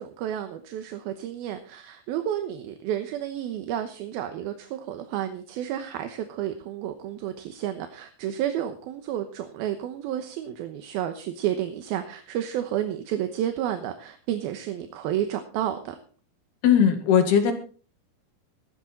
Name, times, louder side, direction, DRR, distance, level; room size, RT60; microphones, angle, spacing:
voice 1, 0.0-16.0, right 11 dB, 75° right, 7 dB, 2.8 m, -31 dB
voice 2, 16.6-17.5, left 8 dB, 75° left, 5 dB, 4.0 m, -18 dB
17.5 x 12.5 x 4.4 m, 0.41 s
omnidirectional pair, 4.6 m